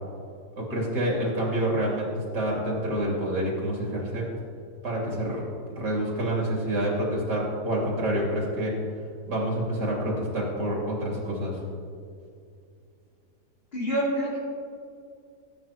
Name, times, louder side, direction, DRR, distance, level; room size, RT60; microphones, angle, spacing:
voice 1, 0.6-2.1 2.3-4.3 4.8-5.4 5.8-8.7 9.3-11.6, right 1 dB, 80° right, -4 dB, 3.7 m, -27 dB
voice 2, 13.7-14.4, right 1 dB, 35° left, -10 dB, 3.5 m, -26 dB
20.0 x 9.5 x 3.1 m, 2.4 s
omnidirectional pair, 1.8 m